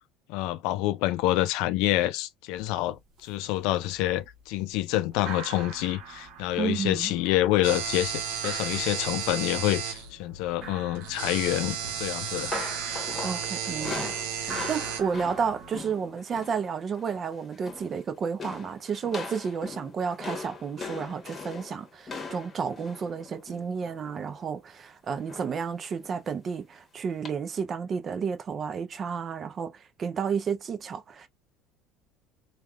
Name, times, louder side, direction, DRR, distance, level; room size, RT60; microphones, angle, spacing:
voice 1, 0.3-12.6, left 15 dB, 75° left, 0.4 m, -27 dB
sound 1, 2.6-2.7 3.0-3.5 3.8-4.4 4.7-4.8 5.1-15.8, right 5 dB, 60° right, 1.0 m, -43 dB
voice 2, 6.6-7.1 13.2-31.3, right 6 dB, 35° right, 0.4 m, -32 dB
sound 2, 7.6-15.0, right 8 dB, 85° right, 0.7 m, -34 dB
sound 3, 12.1-16.7 16.9-17.2 17.5-18.0 18.4-24.4 25.3-25.7 26.0-26.2 27.2-27.3, left 4 dB, 30° left, 1.0 m, -40 dB
3.3 x 2.3 x 2.3 m
supercardioid pair, 105°, 0 cm